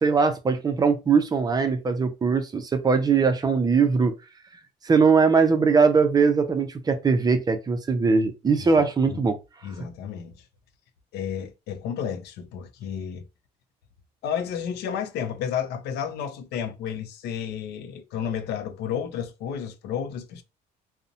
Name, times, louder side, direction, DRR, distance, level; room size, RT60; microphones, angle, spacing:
voice 1, 0.0-4.1 4.8-9.4, right 5 dB, 25° right, 0.4 m, -21 dB
voice 2, 8.8-9.2 9.6-10.4 11.1-13.2 14.2-20.4, left 8 dB, 80° left, 0.5 m, -32 dB
2.6 x 2.1 x 2.6 m
cardioid pair, 110°, 17 cm